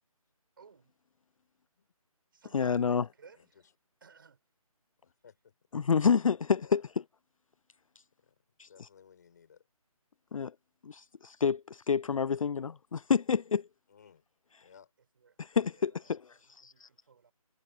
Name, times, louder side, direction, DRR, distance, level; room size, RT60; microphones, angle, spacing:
voice 1, 0.6-0.9 2.3-3.7 4.0-4.4 15.1-15.4 15.7-17.3, right 6 dB, 35° right, 6.1 m, -59 dB
voice 2, 2.5-3.0 5.7-6.8 8.6-8.7 10.3-10.5 10.8-13.6 15.4-16.2 16.6-16.7, left 6 dB, 65° left, 0.4 m, -28 dB
voice 3, 5.0-5.5 6.6-6.9 8.2-8.3 8.7-9.7 13.9-14.3 14.6-14.9, left 7 dB, 30° left, 5.0 m, -59 dB
hypercardioid pair, 175°, 19 cm